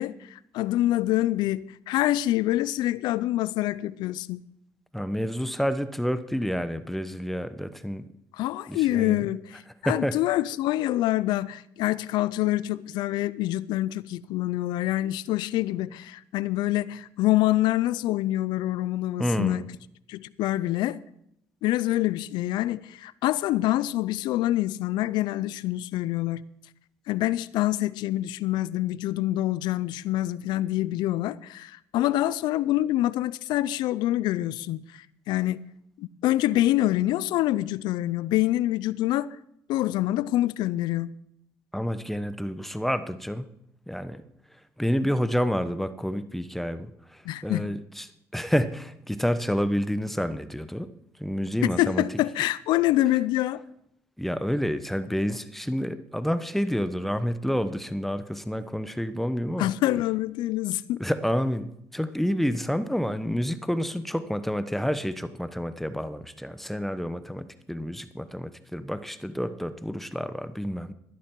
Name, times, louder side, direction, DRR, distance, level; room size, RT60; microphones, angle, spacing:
voice 1, 0.0-4.4 8.3-19.6 20.1-21.0 21.6-26.4 27.1-35.6 36.0-39.3 39.7-41.1 47.3-47.7 51.8-53.6 59.6-61.0, left 15 dB, 80° left, 0.4 m, -26 dB
voice 2, 4.9-8.1 8.7-9.2 9.8-10.2 19.2-19.7 41.7-43.5 43.9-44.2 44.8-50.9 51.2-52.1 54.2-59.7 61.0-70.9, equal, 5° left, 0.9 m, -29 dB
12.5 x 11.0 x 4.6 m
supercardioid pair, 65°, 7 cm